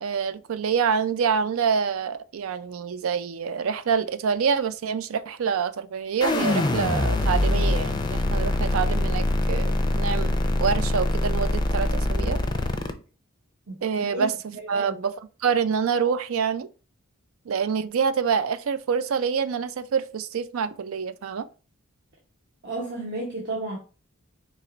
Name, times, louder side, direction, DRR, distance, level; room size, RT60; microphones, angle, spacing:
voice 1, 0.0-12.4 13.8-15.1 15.4-16.7 17.5-21.5, right 6 dB, 75° right, 0.4 m, -26 dB
sound 1, 6.2-12.9, left 1 dB, 20° left, 0.5 m, -24 dB
voice 2, 13.7-14.9 22.6-23.8, right 2 dB, 50° right, 1.0 m, -33 dB
4.6 x 2.9 x 3.8 m
head